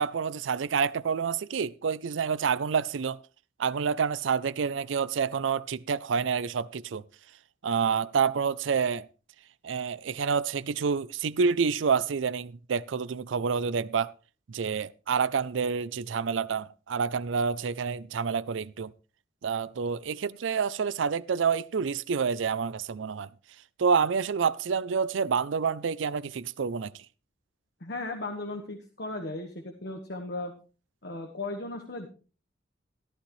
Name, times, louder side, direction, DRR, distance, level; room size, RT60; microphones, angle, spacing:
voice 1, 0.0-3.2 3.6-7.0 7.6-9.1 9.6-14.1 14.5-18.9 19.4-23.3 23.8-27.1, right 6 dB, 85° right, 0.5 m, -28 dB
voice 2, 27.8-30.5 31.0-32.1, left 2 dB, 60° left, 1.4 m, -36 dB
14.0 x 11.5 x 3.2 m
head